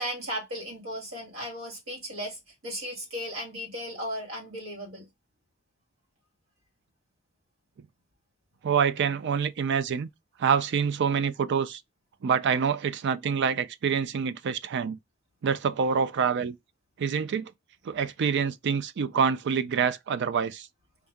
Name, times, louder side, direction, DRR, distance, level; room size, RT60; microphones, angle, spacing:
voice 1, 0.0-5.1, equal, 75° right, 2.3 m, -36 dB
voice 2, 8.6-10.1 10.4-11.8 12.2-15.0 15.4-16.6 17.0-17.5 17.8-20.7, right 6 dB, 55° right, 0.4 m, -26 dB
4.6 x 2.7 x 3.4 m
head